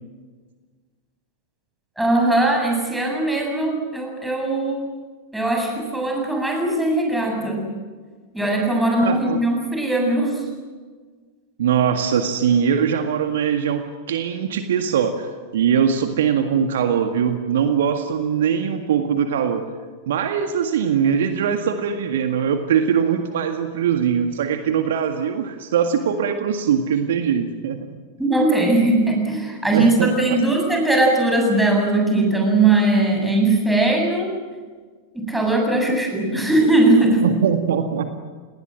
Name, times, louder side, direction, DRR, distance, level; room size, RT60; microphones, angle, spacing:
voice 1, 2.0-4.9 5.3-7.7 8.3-10.5 28.2-34.3 35.1-37.3, right 2 dB, 5° right, 1 dB, 7.7 m, -19 dB
voice 2, 9.0-9.4 11.6-19.6 20.1-27.8 29.7-30.4 37.2-38.2, right 7 dB, 60° right, 7 dB, 1.8 m, -21 dB
28.5 x 20.5 x 7.7 m, 1.5 s
figure-of-eight pair, 90°, 0 cm